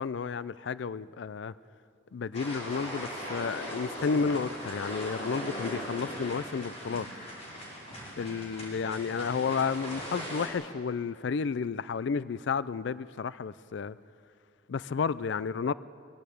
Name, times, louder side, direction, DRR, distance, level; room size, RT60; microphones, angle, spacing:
voice 1, 0.0-1.5 2.1-7.1 8.2-14.0 14.7-15.7, left 5 dB, 65° left, 0.4 m, -32 dB
sound 1, 2.3-10.5, equal, 35° left, 5.3 m, -39 dB
22.0 x 15.5 x 8.5 m
head